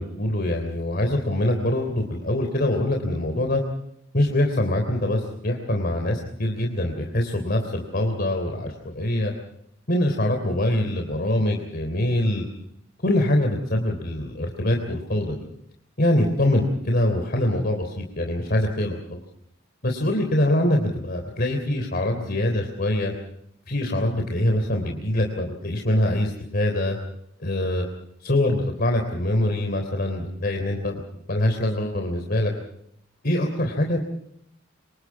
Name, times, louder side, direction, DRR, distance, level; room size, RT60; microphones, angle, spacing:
voice 1, 0.0-3.6 4.1-9.3 9.9-12.4 13.0-15.4 16.0-19.2 19.8-23.1 23.7-27.0 27.4-27.8 28.2-31.0 31.3-32.5 33.2-34.0, left 1 dB, 50° left, 3 dB, 3.4 m, -24 dB
28.0 x 26.0 x 4.7 m, 0.72 s
head